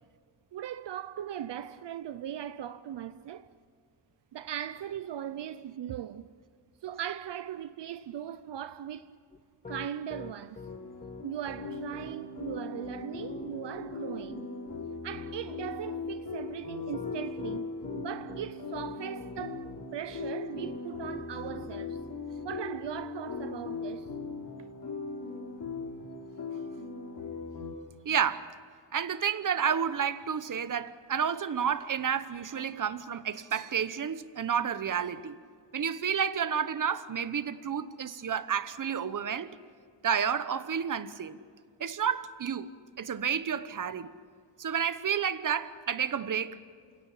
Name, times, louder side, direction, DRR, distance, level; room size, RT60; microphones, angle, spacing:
voice 1, 0.5-3.5 4.3-6.3 6.8-9.2 9.7-10.7 11.2-14.5 15.0-22.0 22.4-24.1, right 10 dB, 70° right, 0.7 m, -39 dB
Piano, 9.3-23.5, left 3 dB, 20° left, 0.7 m, -46 dB
sound 1, 10.6-27.7, left 4 dB, 55° left, 3.5 m, -39 dB
voice 2, 28.0-28.5 28.9-35.4 35.7-39.5 40.0-41.4 41.8-42.7 43.0-44.1 44.6-46.6, right 7 dB, 45° right, 1.0 m, -30 dB
28.5 x 17.5 x 8.4 m
wide cardioid pair, 120°, 43 cm